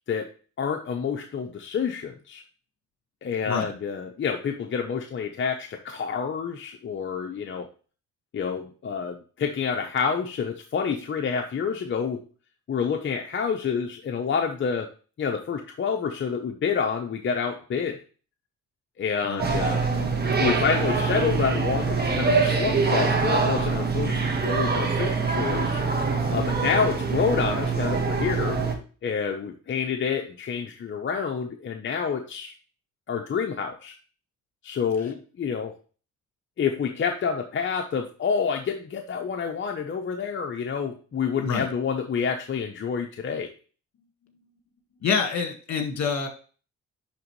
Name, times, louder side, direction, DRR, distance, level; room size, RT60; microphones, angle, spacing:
voice 1, 0.6-2.4 3.2-7.7 8.3-12.2 12.7-14.9 15.2-18.0 19.0-19.9 20.4-25.8 26.3-28.6 29.0-32.5 33.1-33.9 34.6-35.7 36.6-43.5, left 6 dB, 40° left, 3 dB, 0.8 m, -28 dB
voice 2, 19.2-19.6 41.4-41.7 45.0-46.3, left 5 dB, 60° left, 4 dB, 1.8 m, -27 dB
sound 1, 19.4-28.8, right 4 dB, 30° right, 1.6 m, -24 dB
10.5 x 3.6 x 3.1 m, 0.38 s
cardioid pair, 90°, 30 cm